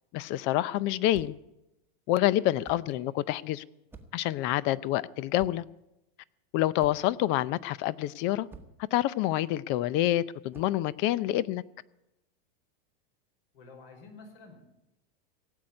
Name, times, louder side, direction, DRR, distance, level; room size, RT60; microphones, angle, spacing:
voice 1, 0.1-1.4 2.1-3.6 4.1-5.6 6.5-8.5 8.9-11.6, left 14 dB, 40° left, 0.5 m, -27 dB
sound 1, 1.1-1.5 2.6-3.0 3.9-4.3 5.4-5.8 6.8-7.2 8.5-8.9 10.5-10.8, right 3 dB, 5° right, 1.1 m, -50 dB
voice 2, 13.5-14.6, left 3 dB, 65° left, 4.9 m, -50 dB
17.5 x 7.9 x 9.7 m
supercardioid pair, 140°, 29 cm